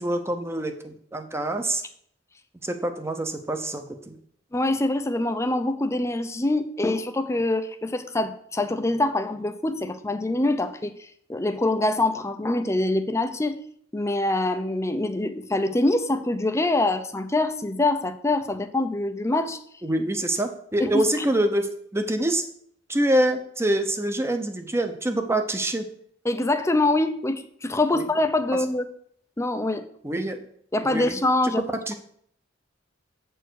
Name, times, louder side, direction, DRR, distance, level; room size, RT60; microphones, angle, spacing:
voice 1, 0.0-1.8 2.6-4.2 19.8-22.4 22.9-25.9 27.9-28.1 30.0-30.4 30.8-31.5 31.9-32.0, right 1 dB, 15° right, 6 dB, 0.8 m, -26 dB
voice 2, 4.5-10.9 11.3-13.6 13.9-19.6 20.8-21.0 26.2-28.8 29.4-29.8 30.7-31.6, left 2 dB, 15° left, 9 dB, 0.6 m, -24 dB
8.0 x 4.5 x 6.3 m, 0.65 s
head